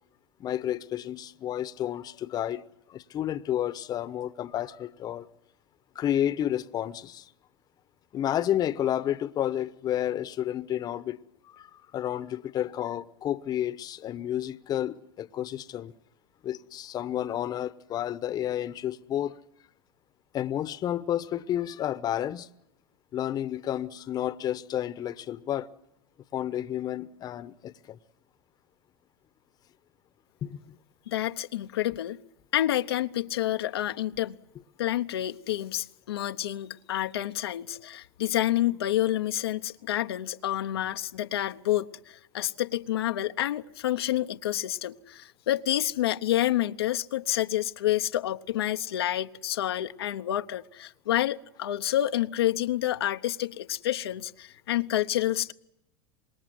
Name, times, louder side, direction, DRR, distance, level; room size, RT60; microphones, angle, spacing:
voice 1, 0.4-2.6 2.9-5.3 5.9-7.3 8.1-11.2 11.4-11.7 11.9-15.9 16.4-19.3 20.3-22.5 23.1-25.7 26.3-28.0 30.4-30.8, left 11 dB, 30° left, 0.9 m, -31 dB
voice 2, 31.1-32.2 32.5-34.3 34.8-55.5, left 13 dB, 90° left, 0.9 m, -28 dB
26.0 x 20.5 x 7.7 m
supercardioid pair, 120°, 13 cm